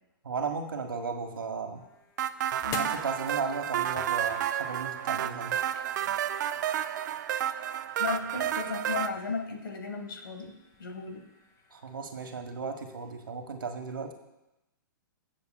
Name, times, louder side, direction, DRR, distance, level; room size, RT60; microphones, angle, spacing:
voice 1, 0.2-1.8 2.7-5.6 11.7-14.1, right 5 dB, 80° right, 5 dB, 1.4 m, -35 dB
sound 1, 1.0-12.0, left 6 dB, 30° left, 0.9 m, -50 dB
sound 2, 2.2-9.1, right 11 dB, 60° right, 0.5 m, -31 dB
voice 2, 8.0-10.5 10.8-11.2, left 5 dB, 80° left, 5 dB, 1.7 m, -35 dB
18.0 x 7.4 x 2.3 m, 0.93 s
hypercardioid pair, 120°, 11 cm